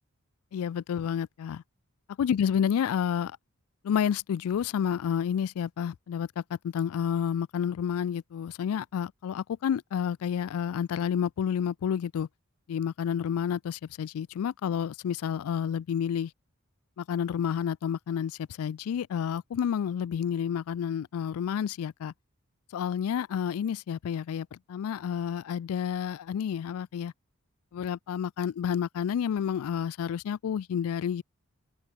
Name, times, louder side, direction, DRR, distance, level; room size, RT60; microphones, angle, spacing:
voice 1, 0.5-1.6 2.2-3.4 3.8-12.3 12.7-16.3 17.0-22.1 22.7-27.1 27.7-31.2, left 8 dB, 80° left, 0.3 m, -30 dB
head